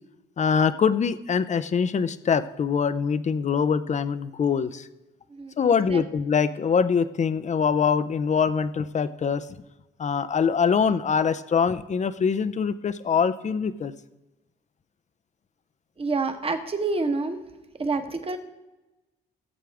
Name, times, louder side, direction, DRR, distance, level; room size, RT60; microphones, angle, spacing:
voice 1, 0.4-4.9 5.6-9.5 10.0-13.9, left 6 dB, 35° left, 14 dB, 0.6 m, -23 dB
voice 2, 16.0-17.4 17.8-18.4, right 3 dB, 30° right, 6 dB, 1.3 m, -27 dB
17.5 x 7.5 x 3.5 m, 1.0 s
cardioid pair, 90°, 20 cm